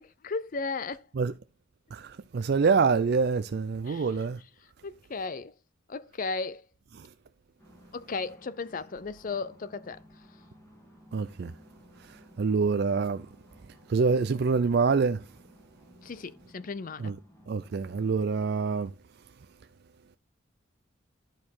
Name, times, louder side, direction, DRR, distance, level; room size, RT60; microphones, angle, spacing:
voice 1, 0.0-1.0 3.9-4.1 4.8-5.5 5.9-6.6 7.9-10.0 16.0-17.1, left 4 dB, 40° left, 0.5 m, -35 dB
voice 2, 1.9-4.4 7.0-7.1 11.1-11.5 12.0-13.3 13.9-15.3 17.0-17.2 17.5-18.9, right 5 dB, 55° right, 0.4 m, -26 dB
sound 1, 7.6-18.9, equal, 15° left, 2.0 m, -57 dB
10.5 x 4.6 x 4.4 m
head